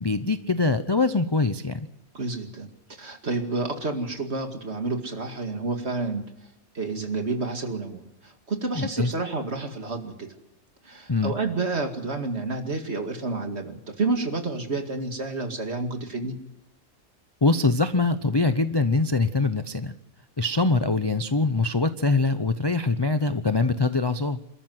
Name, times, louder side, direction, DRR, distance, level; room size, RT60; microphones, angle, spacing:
voice 1, 0.0-1.9 8.7-9.1 11.1-11.3 17.4-19.9 20.4-24.4, left 3 dB, 25° left, 9 dB, 0.6 m, -23 dB
voice 2, 2.1-2.7 3.0-6.2 6.7-10.3 10.8-16.3, right 3 dB, 50° right, 5 dB, 2.5 m, -29 dB
28.0 x 13.5 x 7.8 m, 0.88 s
omnidirectional pair, 1.5 m